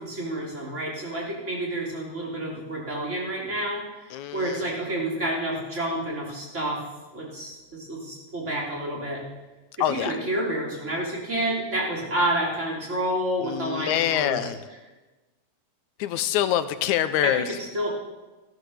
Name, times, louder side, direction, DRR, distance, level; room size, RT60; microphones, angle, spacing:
voice 1, 0.0-6.8 7.1-9.2 9.8-14.5 17.2-17.9, right 1 dB, 20° right, -2 dB, 3.5 m, -29 dB
voice 2, 4.1-4.7 9.8-10.1 13.4-14.7 16.0-17.5, left 11 dB, 75° left, 11 dB, 2.0 m, -25 dB
15.5 x 13.5 x 6.5 m, 1.2 s
omnidirectional pair, 3.8 m